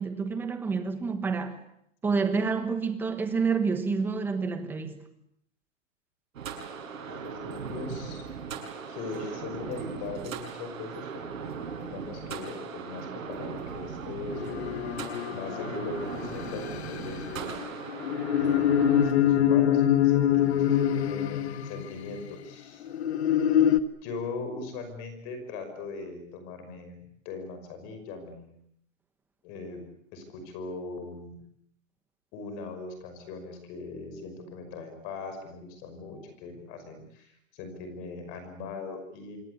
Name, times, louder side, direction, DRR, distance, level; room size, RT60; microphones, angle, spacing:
voice 1, 0.0-1.6 2.0-5.0, right 5 dB, 5° right, 1.2 m, -28 dB
sound 1, 6.3-19.1, right 6 dB, 85° right, 7.8 m, -38 dB
voice 2, 7.0-8.2 8.9-11.1 11.4-14.7 15.3-17.6 18.4-22.8 24.0-28.6 29.4-31.4 32.3-39.4, left 3 dB, 25° left, 5.6 m, -40 dB
sound 2, 14.3-22.2 22.8-23.8, left 10 dB, 55° left, 1.6 m, -25 dB
27.0 x 23.0 x 8.2 m
supercardioid pair, 180°, 39 cm